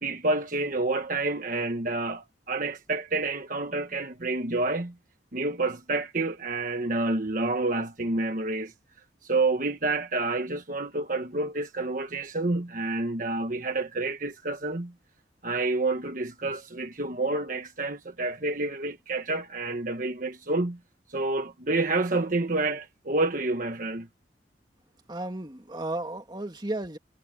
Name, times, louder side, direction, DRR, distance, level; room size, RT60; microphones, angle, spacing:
voice 1, 0.0-4.9 5.3-8.7 9.2-14.9 15.4-20.8 21.1-24.1, right 2 dB, 45° right, 1.3 m, -29 dB
voice 2, 25.1-27.0, right 1 dB, 25° right, 2.1 m, -34 dB
head